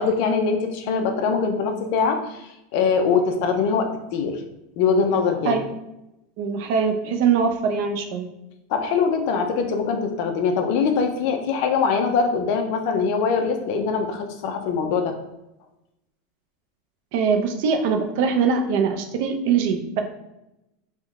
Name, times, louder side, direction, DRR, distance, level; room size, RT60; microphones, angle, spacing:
voice 1, 0.0-4.4 4.8-5.6 8.7-15.1, left 5 dB, 50° left, 5 dB, 0.5 m, -22 dB
voice 2, 6.4-8.3 17.1-20.0, right 6 dB, 50° right, 5 dB, 0.4 m, -22 dB
3.6 x 2.1 x 3.5 m, 0.90 s
supercardioid pair, 170°, 0 cm